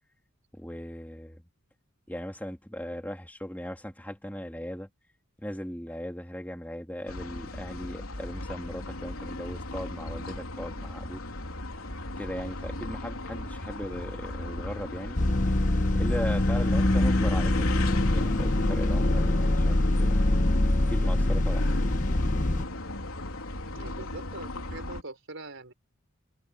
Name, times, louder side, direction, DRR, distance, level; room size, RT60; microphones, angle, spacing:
voice 1, 0.6-1.4 2.1-4.9 5.4-11.2 12.2-15.2 15.9-17.7 18.0-20.2 20.9-21.8, equal, 10° left, 2.8 m, -38 dB
sound 1, 7.1-25.0, left 1 dB, 80° left, 3.7 m, -35 dB
sound 2, 15.2-22.7, left 1 dB, 40° left, 1.0 m, -24 dB
voice 2, 23.7-25.7, right 2 dB, 65° right, 5.0 m, -43 dB
open air
head